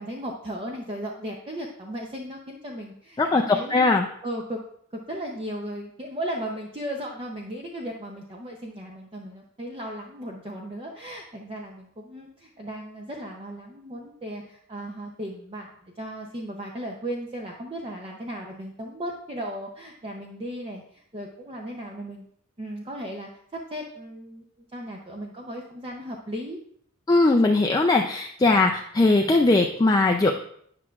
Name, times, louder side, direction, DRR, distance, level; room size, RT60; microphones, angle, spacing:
voice 1, 0.0-3.9 4.2-4.6 4.9-22.3 22.6-24.4 24.7-26.6, equal, 25° right, 0 dB, 0.6 m, -36 dB
voice 2, 3.2-4.1 27.1-30.3, left 2 dB, 20° left, 2 dB, 0.4 m, -20 dB
10.5 x 5.8 x 2.4 m, 0.65 s
head